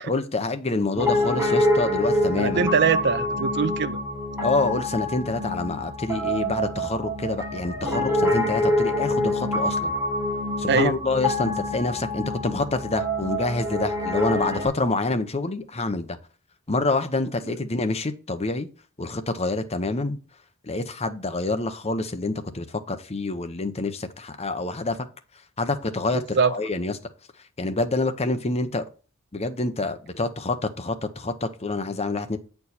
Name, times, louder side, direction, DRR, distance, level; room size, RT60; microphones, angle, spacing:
voice 1, 0.0-2.7 4.4-9.9 10.6-16.2 16.7-18.7 19.0-20.2 20.6-25.0 25.6-26.9 27.6-28.8 29.3-32.4, left 2 dB, 30° left, 0.8 m, -27 dB
Piano, 1.0-14.7, left 1 dB, 10° right, 3.6 m, -26 dB
voice 2, 2.4-4.0 10.7-11.0 26.1-26.5, right 5 dB, 50° right, 0.5 m, -22 dB
8.2 x 4.6 x 4.2 m
head